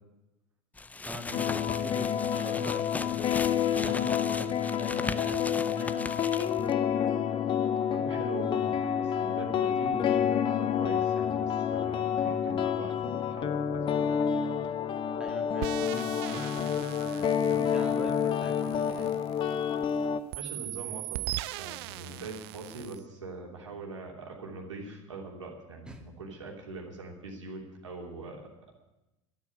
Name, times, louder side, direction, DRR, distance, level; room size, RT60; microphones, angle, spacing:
sound 1, 0.8-6.7, left 3 dB, 10° left, 0.5 m, -38 dB
voice 1, 1.0-3.2 3.7-6.7 15.2-16.7 17.0-19.2 25.9-26.0, right 1 dB, 5° right, 2 dB, 2.0 m, -43 dB
sound 2, 1.3-20.2, left 8 dB, 35° left, 0.8 m, -29 dB
voice 2, 7.9-14.2 20.0-20.1 20.4-21.2 21.5-28.8, right 3 dB, 80° right, -1 dB, 3.1 m, -42 dB
sound 3, 15.6-19.9 20.3-23.0, right 19 dB, 55° right, 0.4 m, -40 dB
12.5 x 8.4 x 9.9 m, 0.98 s
figure-of-eight pair, 75°, 15 cm